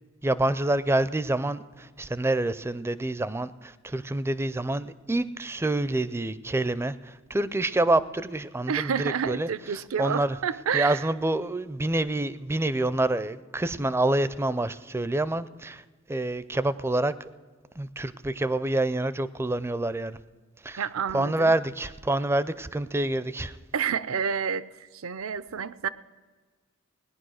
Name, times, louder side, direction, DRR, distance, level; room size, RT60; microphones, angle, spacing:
voice 1, 0.2-1.6 2.0-6.9 7.3-9.5 10.0-10.4 10.7-15.8 16.1-17.1 17.8-20.2 20.6-20.8 21.1-23.5, right 2 dB, 10° right, 16 dB, 0.4 m, -27 dB
voice 2, 8.7-11.1 20.8-21.5 23.7-24.6 24.9-25.9, right 7 dB, 70° right, 17 dB, 0.5 m, -29 dB
18.0 x 10.5 x 6.3 m, 1.4 s
head